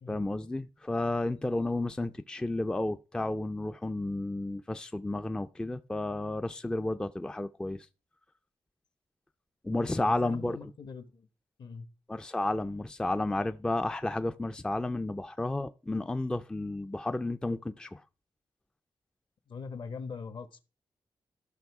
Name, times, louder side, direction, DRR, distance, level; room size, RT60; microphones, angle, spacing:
voice 1, 0.1-7.9 9.6-10.6 12.1-18.0, left 2 dB, 10° left, 0.4 m, -32 dB
voice 2, 10.0-11.3 11.6-11.9 19.5-20.6, left 5 dB, 60° left, 1.3 m, -42 dB
13.0 x 6.0 x 4.7 m
wide cardioid pair, 135°, 9 cm